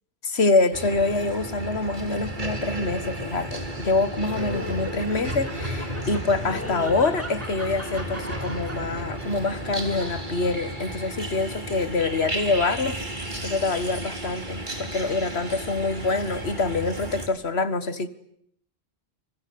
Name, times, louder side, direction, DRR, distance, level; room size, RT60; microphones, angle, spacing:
voice 1, 0.2-13.0 13.4-18.1, left 3 dB, 80° left, 13 dB, 2.0 m, -25 dB
sound 1, 0.7-17.3, right 1 dB, 50° right, 3.7 m, -33 dB
sound 2, 4.3-4.9 6.3-7.1 7.8-8.7 9.2-9.6 9.9-10.4 11.9-12.1, left 1 dB, 10° left, 2.7 m, -39 dB
Laughter, 4.3-10.9, equal, 15° right, 3.2 m, -39 dB
29.0 x 21.5 x 9.5 m, 0.71 s
omnidirectional pair, 1.1 m